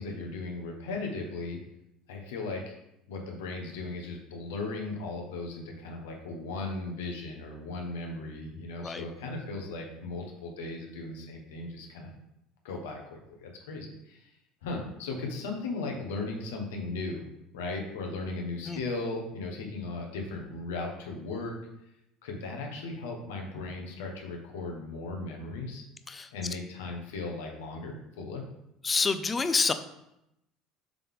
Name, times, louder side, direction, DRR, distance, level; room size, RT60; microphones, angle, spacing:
voice 1, 0.0-1.6 2.1-2.8 3.1-12.1 12.6-14.3 14.6-17.2 17.5-21.5 22.2-25.8 26.3-28.4, left 3 dB, 85° left, 1 dB, 1.3 m, -37 dB
voice 2, 28.8-29.7, left 4 dB, 25° left, 10 dB, 0.5 m, -27 dB
6.7 x 3.7 x 3.8 m, 0.83 s
supercardioid pair, 85°, 0 cm